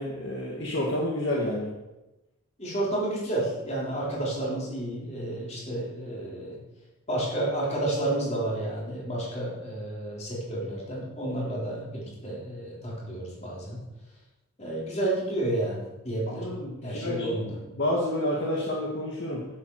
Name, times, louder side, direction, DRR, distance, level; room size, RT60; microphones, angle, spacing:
voice 1, 0.0-1.7 16.3-19.5, left 1 dB, 55° left, -3 dB, 2.0 m, -29 dB
voice 2, 2.6-6.6 7.1-13.8 14.6-16.4 16.8-17.5, right 1 dB, 30° left, -5 dB, 4.1 m, -31 dB
11.5 x 10.0 x 4.9 m, 0.98 s
head